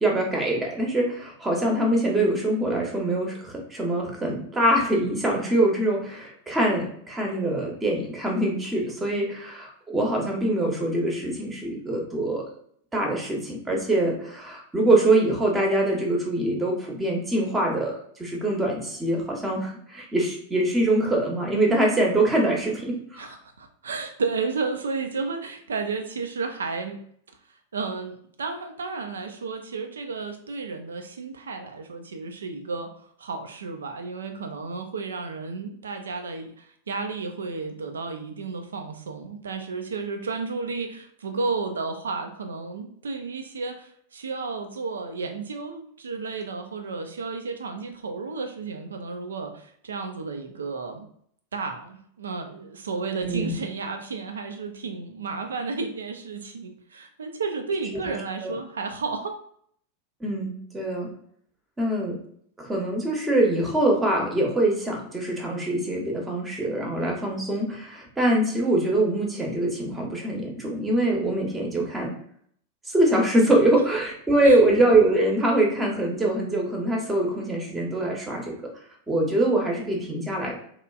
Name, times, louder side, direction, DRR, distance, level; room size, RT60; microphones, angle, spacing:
voice 1, 0.0-12.5 12.9-23.3 53.2-53.6 58.1-58.2 58.4-58.5 60.2-61.1 61.8-62.2 62.6-72.1 72.9-78.6 79.1-80.5, right 1 dB, 15° right, -1 dB, 0.8 m, -24 dB
voice 2, 23.2-27.0 27.7-32.9 33.2-51.1 51.5-59.4 74.4-74.6, right 4 dB, 70° right, 5 dB, 0.4 m, -32 dB
3.0 x 2.3 x 2.3 m, 0.64 s
figure-of-eight pair, 90°, 0 cm